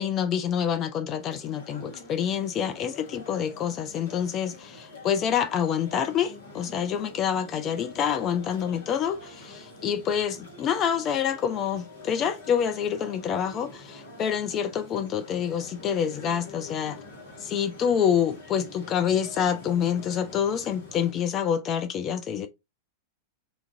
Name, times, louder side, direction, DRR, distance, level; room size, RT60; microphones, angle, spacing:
voice 1, 0.0-17.0 17.4-22.5, left 8 dB, 30° left, 0.3 m, -27 dB
sound 1, 1.2-21.1, left 2 dB, 65° left, 1.3 m, -46 dB
2.7 x 2.3 x 2.9 m
figure-of-eight pair, 90°, 0 cm